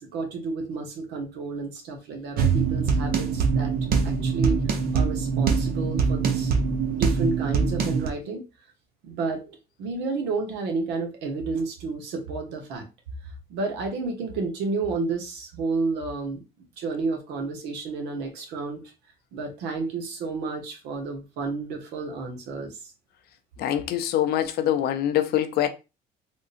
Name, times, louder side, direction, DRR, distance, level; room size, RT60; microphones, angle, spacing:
voice 1, 0.0-3.7 4.0-4.6 4.9-6.5 6.9-8.4 9.0-12.9 13.5-16.4 16.8-18.8 19.3-22.9, right 3 dB, 85° right, 1.0 m, -31 dB
sound 1, 2.4-8.1, right 5 dB, 60° right, 0.7 m, -23 dB
voice 2, 23.6-25.7, left 11 dB, 70° left, 0.6 m, -24 dB
3.6 x 2.6 x 2.5 m
cardioid pair, 110°, 17 cm